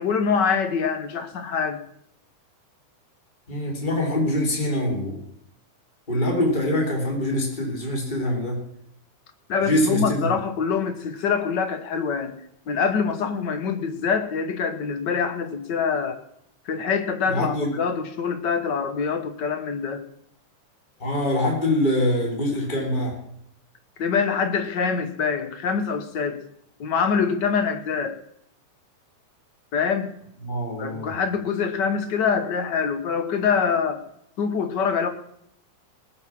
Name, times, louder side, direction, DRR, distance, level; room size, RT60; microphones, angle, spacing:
voice 1, 0.0-1.8 9.5-12.4 12.7-16.2 16.7-20.0 24.0-26.4 26.8-28.2 29.7-30.1 30.8-34.0 34.4-35.1, left 6 dB, 65° left, 9 dB, 1.0 m, -25 dB
voice 2, 3.5-5.2 6.1-8.6 9.6-10.3 17.3-17.7 21.0-23.2 30.4-31.1, left 1 dB, 15° left, -1 dB, 3.5 m, -24 dB
20.0 x 7.4 x 6.0 m, 0.72 s
omnidirectional pair, 3.6 m